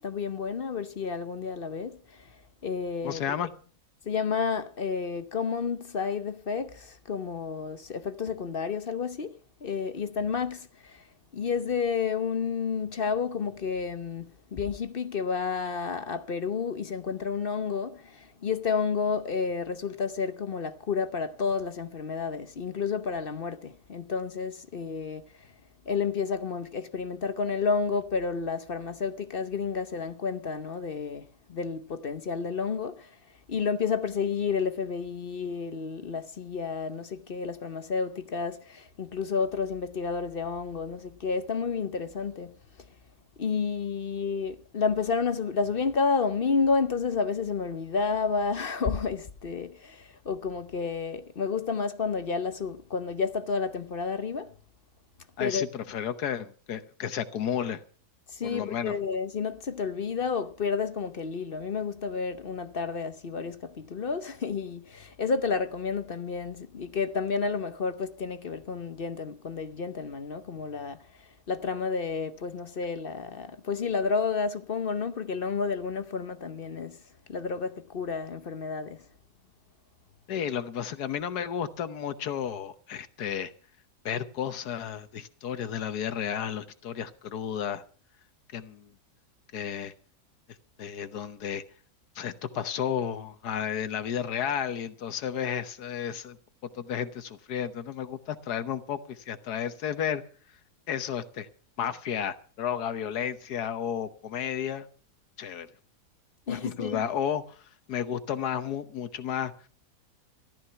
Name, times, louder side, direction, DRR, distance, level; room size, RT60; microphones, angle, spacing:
voice 1, 0.0-2.3 2.6-3.2 4.1-11.0 11.3-25.5 25.9-33.1 33.5-42.5 43.4-54.5 55.4-55.6 58.3-71.0 71.5-77.0 77.3-79.0 106.5-107.0, left 5 dB, 45° left, 0.8 m, -30 dB
voice 2, 3.0-3.5 55.4-57.8 58.4-59.0 80.3-83.5 84.0-87.8 88.5-88.9 89.5-89.9 90.8-91.6 92.1-96.4 96.7-100.2 100.9-101.5 101.8-104.9 105.4-105.7 106.5-109.5, left 8 dB, 75° left, 1.5 m, -32 dB
14.5 x 12.5 x 5.7 m
omnidirectional pair, 1.7 m